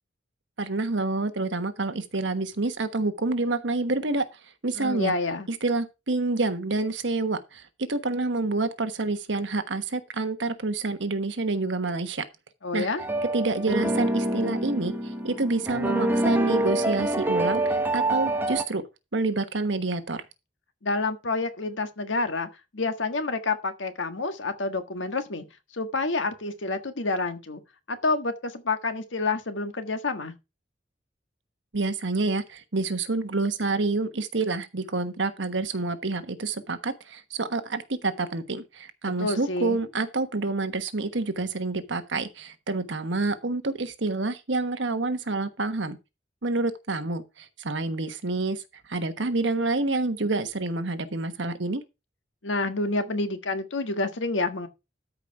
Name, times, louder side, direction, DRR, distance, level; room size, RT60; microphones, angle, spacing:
voice 1, 0.6-4.3 4.6-5.1 5.5-12.2 12.7-12.9 13.3-18.8 19.1-20.2 31.7-46.0 46.4-48.6 48.9-51.8, right 3 dB, 75° right, 1.3 m, -28 dB
voice 2, 4.8-5.5 12.6-13.0 20.8-25.4 25.7-27.6 27.9-30.3 39.2-39.8 52.4-54.7, left 3 dB, 85° left, 1.5 m, -28 dB
sound 1, 13.0-18.6, right 1 dB, 10° right, 1.2 m, -26 dB
13.0 x 5.1 x 4.7 m
head